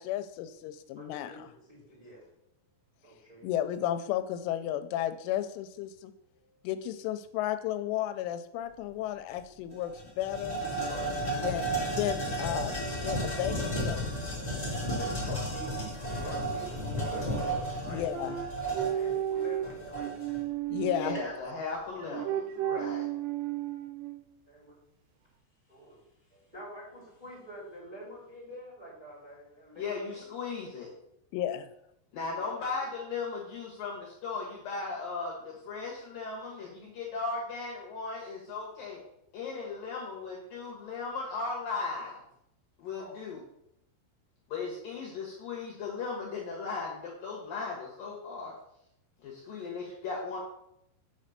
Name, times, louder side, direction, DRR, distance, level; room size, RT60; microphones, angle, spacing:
voice 1, 0.0-1.5 3.4-6.1 6.6-10.6 11.4-14.1 15.3-15.4 17.9-18.4 20.7-21.2 31.3-31.7, left 12 dB, 85° left, 10 dB, 3.0 m, -33 dB
voice 2, 1.0-1.4 1.7-2.2 3.0-3.5 6.4-6.6 10.9-11.7 14.9-17.3 17.6-18.0 18.8-20.1 21.2-21.3 21.9-22.0 24.5-24.8 25.7-30.3 32.3-32.8 43.0-43.2 44.7-44.8 49.6-49.7, equal, 10° right, -6 dB, 2.7 m, -47 dB
sound 1, 9.3-9.4 9.7-20.4, right 1 dB, 15° left, 1.8 m, -33 dB
sound 2, 18.1-21.3 22.0-24.3, right 11 dB, 80° right, 2.8 m, -33 dB
voice 3, 20.9-23.1 29.8-30.9 32.1-39.0 39.3-42.2 42.8-43.4 44.5-48.5 49.2-50.4, left 4 dB, 65° left, -3 dB, 2.5 m, -37 dB
7.9 x 4.2 x 6.5 m, 0.78 s
omnidirectional pair, 5.5 m